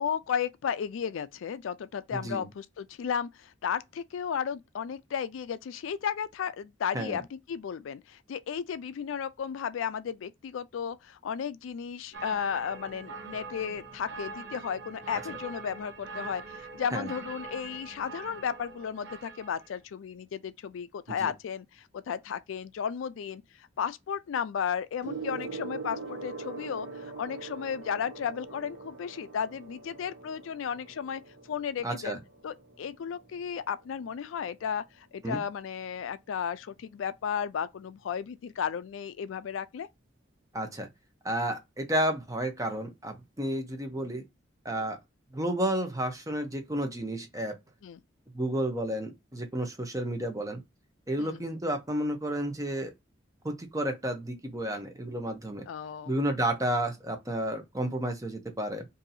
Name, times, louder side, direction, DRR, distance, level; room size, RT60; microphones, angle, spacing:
voice 1, 0.0-31.2 31.5-32.2 32.4-39.9 47.8-48.0 51.2-51.4 55.7-56.1, left 7 dB, 85° left, 0.4 m, -34 dB
voice 2, 2.1-2.5 6.9-7.2 15.3-15.4 16.9-17.1 21.1-21.3 31.8-32.2 35.2-35.4 40.5-40.9 41.2-44.2 44.6-45.0 45.3-47.6 48.3-50.6 51.1-52.9 53.4-55.6 56.1-58.9, right 1 dB, 15° right, 0.7 m, -31 dB
sound 1, 12.1-19.8, right 4 dB, 60° right, 0.7 m, -43 dB
Gong, 25.0-34.8 35.7-36.0, right 4 dB, 85° right, 1.1 m, -43 dB
2.7 x 2.7 x 4.0 m
head